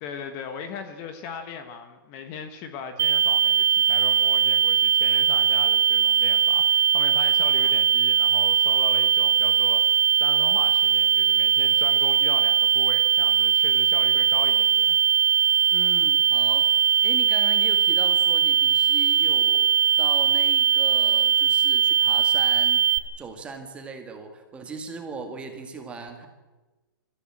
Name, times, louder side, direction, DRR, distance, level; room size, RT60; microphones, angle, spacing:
voice 1, 0.0-15.0, left 6 dB, 25° left, 8 dB, 1.5 m, -38 dB
sound 1, 3.0-23.0, right 8 dB, 60° right, 1.8 m, -20 dB
voice 2, 15.7-22.8 23.2-26.3, right 4 dB, 10° right, 5 dB, 1.9 m, -39 dB
25.0 x 14.5 x 7.5 m, 1.2 s
hypercardioid pair, 165°, 12 cm